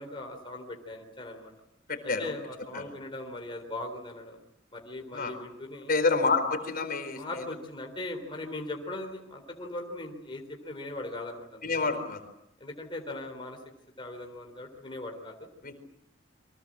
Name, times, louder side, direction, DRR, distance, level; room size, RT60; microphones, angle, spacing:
voice 1, 0.0-1.5 2.0-4.4 4.7-5.9 7.2-11.8 12.6-13.6 14.0-15.5, left 2 dB, 25° left, 2 dB, 4.0 m, -39 dB
voice 2, 1.9-2.3 2.7-2.8 5.1-5.3 5.9-7.5 11.6-12.2 15.6-15.7, left 4 dB, 50° left, 7 dB, 4.5 m, -28 dB
30.0 x 24.0 x 7.6 m, 0.75 s
head